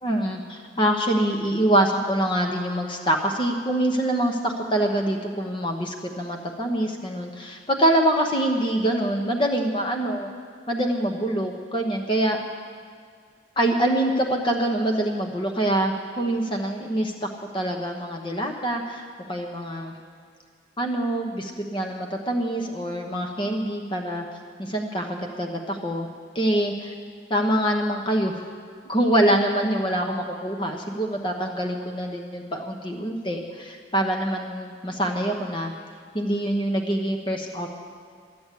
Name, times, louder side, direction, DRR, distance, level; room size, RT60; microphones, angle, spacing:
voice 1, 0.0-10.3 10.7-12.4 13.6-17.3 17.5-19.9 20.8-24.2 24.6-26.1 26.3-26.9 27.3-28.4 28.8-35.7 36.1-37.7, right 1 dB, 25° left, 2 dB, 0.9 m, -25 dB
13.5 x 9.6 x 8.3 m, 2.1 s
head